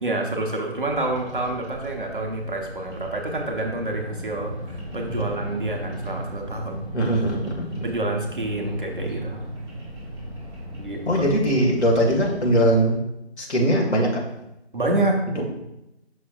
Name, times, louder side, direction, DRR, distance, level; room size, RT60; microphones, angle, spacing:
voice 1, 0.0-6.8 7.8-9.4 10.8-11.2 14.7-15.5, right 2 dB, 50° right, 1 dB, 1.2 m, -28 dB
Bird vocalization bird call bird song, 0.9-12.9, right 1 dB, 25° right, 1.8 m, -36 dB
voice 2, 6.9-7.7 11.1-13.0 13.4-14.1, right 1 dB, 75° left, -1 dB, 2.0 m, -20 dB
8.0 x 6.2 x 2.5 m, 0.90 s
figure-of-eight pair, 160°, 34 cm